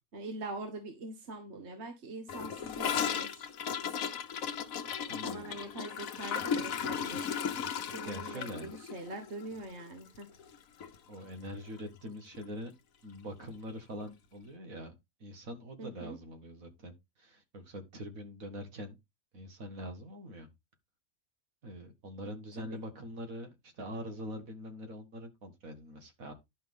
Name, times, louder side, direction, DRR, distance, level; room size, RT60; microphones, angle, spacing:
voice 1, 0.1-3.5 5.2-7.4 7.9-10.3 15.8-16.2 22.6-22.8, right 2 dB, 55° right, 1.7 m, -43 dB
Gurgling / Toilet flush, 2.3-10.6 10.8-11.0 11.2-11.7 12.0-12.1 12.3-12.4 13.4-13.5, left 7 dB, 80° left, 1.3 m, -36 dB
voice 2, 5.1-5.6 8.1-8.7 11.1-12.7 13.0-14.9 15.2-16.9 17.2-19.0 19.3-20.5 21.6-26.3, equal, 80° right, 2.2 m, -43 dB
11.0 x 5.8 x 3.6 m
omnidirectional pair, 1.4 m